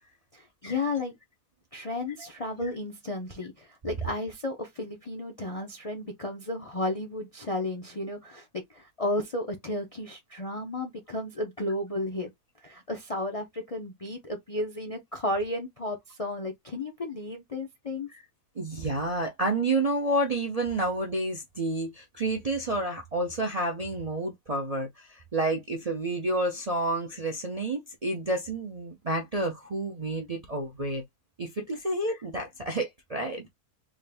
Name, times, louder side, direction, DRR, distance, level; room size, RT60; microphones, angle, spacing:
voice 1, 0.3-1.1 1.7-12.3 12.6-18.1, left 2 dB, 40° left, 0.5 m, -33 dB
voice 2, 18.6-31.0 31.4-33.5, right 2 dB, 40° right, 0.5 m, -30 dB
3.6 x 2.5 x 3.4 m
omnidirectional pair, 1.6 m